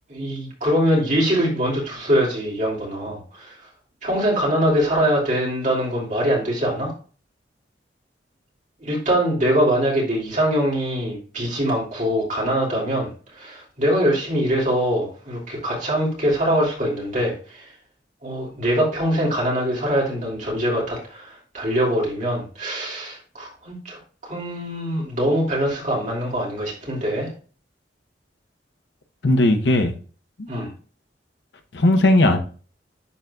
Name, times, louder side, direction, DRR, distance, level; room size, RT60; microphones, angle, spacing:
voice 1, 0.1-3.7 4.0-6.9 8.8-17.7 18.2-27.3 30.5-30.7, equal, 45° right, 2.9 m, -23 dB
voice 2, 29.2-29.9 30.4-30.5 31.7-32.4, left 1 dB, 70° left, 0.9 m, -17 dB
11.0 x 3.9 x 2.3 m
head